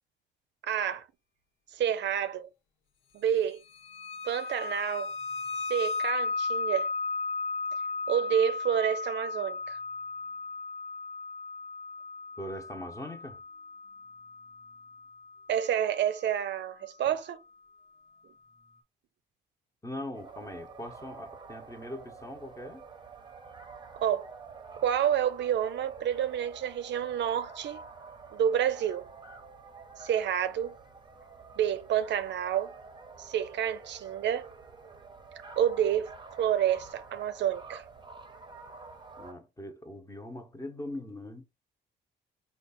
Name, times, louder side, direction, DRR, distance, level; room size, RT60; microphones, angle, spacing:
voice 1, 0.7-1.0 1.7-2.5 3.1-3.6 4.3-5.1 5.7-6.9 8.1-9.8 15.5-17.4 24.0-24.3 24.8-27.8 28.3-29.1 30.0-30.8 31.6-32.7 33.2-34.5 35.6-36.1 36.4-37.8, right 9 dB, 65° right, 0.5 m, -29 dB
sound 1, 3.7-16.2, left 3 dB, 85° left, 1.1 m, -36 dB
voice 2, 12.4-13.4 17.1-17.2 19.8-22.8 39.2-41.4, left 1 dB, 15° left, 0.9 m, -41 dB
sound 2, 20.1-39.3, right 4 dB, 25° right, 0.7 m, -48 dB
4.5 x 2.4 x 4.1 m
cardioid pair, 90°, 20 cm